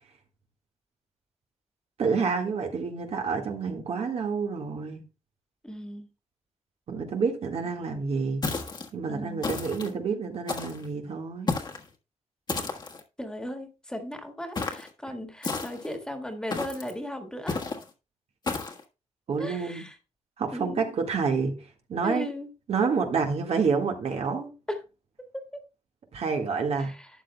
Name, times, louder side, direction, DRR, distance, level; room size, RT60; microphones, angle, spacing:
voice 1, 2.0-5.0 6.9-8.4 8.9-11.5 19.3-19.8 20.4-22.3 22.7-24.5 26.1-26.9, right 5 dB, 65° right, 1.7 m, -28 dB
voice 2, 5.6-6.1 9.1-9.4 13.2-17.6 19.4-20.0 20.5-20.9 22.0-22.5 24.7-24.8 25.3-25.6 26.8-27.1, left 1 dB, 5° left, 1.7 m, -36 dB
sound 1, 8.4-8.9 9.4-9.9 10.5-10.9 11.5-11.9 12.5-13.0 14.6-14.9 15.4-15.9 16.5-16.9 17.5-17.8 18.5-18.8, left 4 dB, 40° left, 1.4 m, -32 dB
12.5 x 8.9 x 2.2 m
wide cardioid pair, 135°, 12 cm